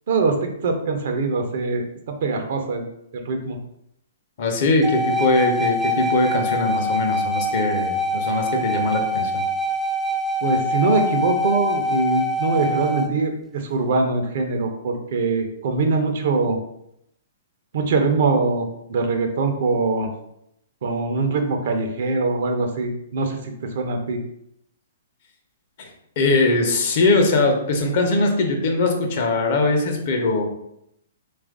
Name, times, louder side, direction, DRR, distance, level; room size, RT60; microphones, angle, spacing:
voice 1, 0.1-2.8 3.1-3.6 10.4-16.6 17.7-20.1 20.8-24.2, right 3 dB, 60° right, 5 dB, 0.6 m, -23 dB
voice 2, 4.4-9.4 25.8-25.9 26.2-30.4, left 2 dB, 55° left, 3 dB, 0.7 m, -21 dB
sound 1, 4.8-13.1, left 1 dB, ahead, 0.3 m, -24 dB
3.1 x 2.4 x 3.6 m, 0.78 s
hypercardioid pair, 130°, 0 cm